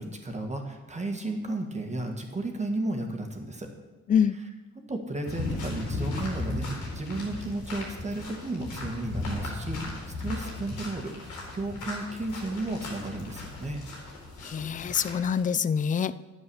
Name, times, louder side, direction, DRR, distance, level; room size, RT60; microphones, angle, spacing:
voice 1, 0.0-3.7 4.3-4.5 4.9-13.8, right 2 dB, 25° right, 3 dB, 1.8 m, -33 dB
sound 1, 5.3-15.4, left 2 dB, 85° left, 4.1 m, -36 dB
voice 2, 14.4-16.1, left 7 dB, 25° left, 17 dB, 0.4 m, -25 dB
9.9 x 8.0 x 7.1 m, 1.2 s
cardioid pair, 90°, 30 cm